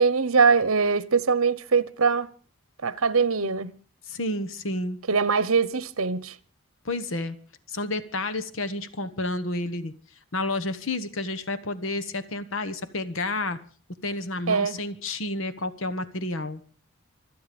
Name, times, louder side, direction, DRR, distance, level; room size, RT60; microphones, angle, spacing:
voice 1, 0.0-2.3 2.8-3.7 5.1-6.3 14.5-14.8, right 5 dB, 80° right, 1.0 m, -22 dB
voice 2, 4.1-5.0 6.8-7.4 7.7-9.9 10.3-13.6 14.0-16.6, left 2 dB, 65° left, 1.3 m, -30 dB
26.0 x 9.3 x 5.3 m
head